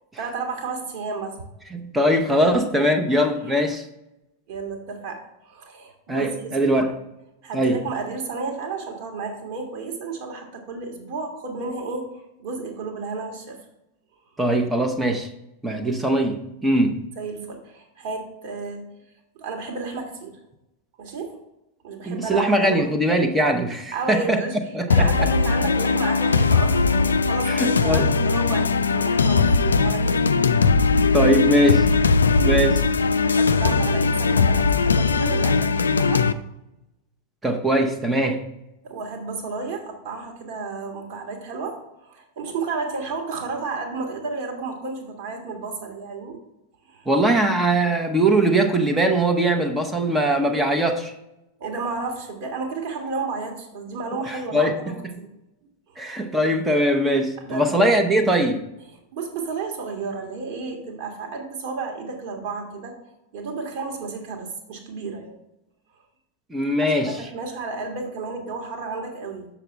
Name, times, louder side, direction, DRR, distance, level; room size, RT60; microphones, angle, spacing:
voice 1, 0.2-1.4 2.4-2.9 3.5-3.6 4.5-6.9 7.4-12.1 12.4-13.6 17.2-18.8 19.3-20.4 21.0-21.4 21.8-22.9 23.9-24.6 24.9-30.6 31.2-31.3 31.9-32.0 33.3-36.3 38.8-46.4 46.8-47.1 51.6-55.3 55.9-56.1 57.4-57.8 59.1-63.0 63.3-65.3 66.9-69.5, right 4 dB, 50° right, 2 dB, 1.9 m, -32 dB
voice 2, 1.7-3.8 6.1-6.9 7.5-7.8 14.4-15.3 15.6-17.0 22.1-24.4 24.7-25.3 27.5-28.1 31.0-31.9 32.4-32.8 37.4-38.4 47.1-51.1 54.3-55.1 56.0-58.6 66.5-67.1, right 1 dB, 10° right, 4 dB, 0.9 m, -21 dB
sound 1, 24.9-36.3, left 4 dB, 75° left, 0.3 m, -19 dB
7.2 x 6.8 x 3.5 m, 0.89 s
figure-of-eight pair, 90°, 0 cm